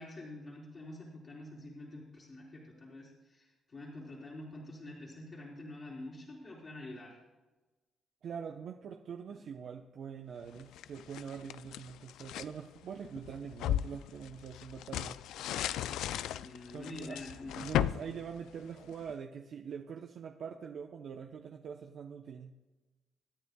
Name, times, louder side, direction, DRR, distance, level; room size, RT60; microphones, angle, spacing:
voice 1, 0.0-7.2 16.4-17.6, left 1 dB, 40° left, -6 dB, 3.9 m, -47 dB
voice 2, 8.2-15.2 16.7-17.2 17.6-22.6, right 7 dB, 65° right, 3 dB, 0.8 m, -44 dB
sound 1, 10.6-12.5 13.0-19.1, left 12 dB, 85° left, 0.3 m, -36 dB
25.0 x 9.8 x 2.3 m, 1.2 s
cardioid pair, 90°, 0 cm